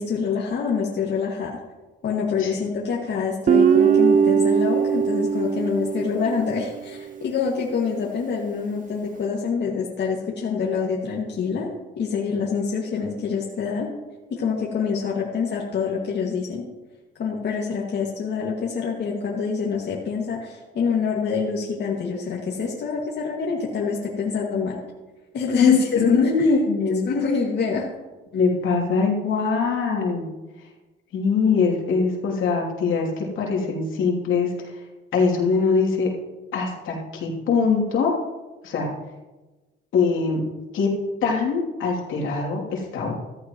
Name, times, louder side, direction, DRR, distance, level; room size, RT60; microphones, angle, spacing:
voice 1, 0.0-1.6 2.0-11.7 12.0-13.9 14.3-16.6 17.2-24.8 25.3-26.5 27.1-27.9, left 5 dB, 60° left, -3 dB, 2.1 m, -26 dB
Guitar, 3.5-6.8, right 7 dB, 40° right, 0.6 m, -20 dB
voice 2, 25.5-27.0 28.3-30.3 31.1-34.5 35.1-36.1 36.5-38.1 38.6-38.9 39.9-40.4 40.7-40.9 41.2-43.1, left 5 dB, 80° left, -1 dB, 3.0 m, -22 dB
14.5 x 14.0 x 3.1 m, 1.2 s
cardioid pair, 90°, 20 cm